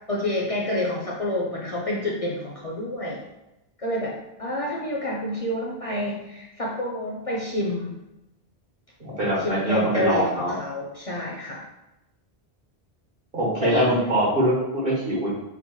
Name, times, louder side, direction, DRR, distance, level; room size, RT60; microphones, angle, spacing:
voice 1, 0.1-3.2 3.8-7.9 9.3-11.6 13.6-13.9, left 1 dB, 45° left, -3 dB, 0.6 m, -28 dB
voice 2, 9.0-10.5 13.3-15.3, right 1 dB, 60° right, -6 dB, 1.7 m, -23 dB
5.8 x 2.1 x 3.0 m, 0.92 s
omnidirectional pair, 1.0 m